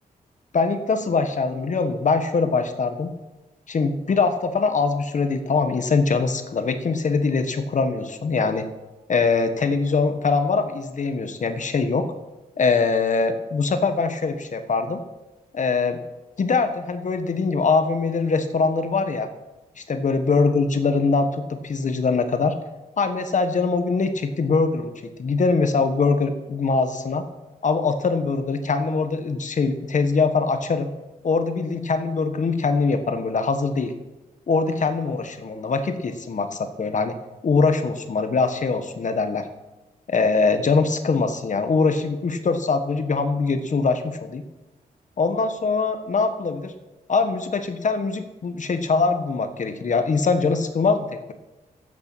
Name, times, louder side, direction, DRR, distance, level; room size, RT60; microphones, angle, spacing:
voice 1, 0.5-3.1 3.7-8.6 9.1-12.1 12.6-15.0 15.5-16.0 16.4-19.3 19.8-22.6 23.0-24.9 25.2-27.2 27.6-30.9 31.2-33.9 34.5-37.1 37.4-39.5 40.1-44.4 45.2-46.7 47.1-51.3, left 4 dB, 55° left, 8 dB, 1.4 m, -22 dB
13.0 x 8.8 x 8.5 m, 1.1 s
cardioid pair, 85°, 15 cm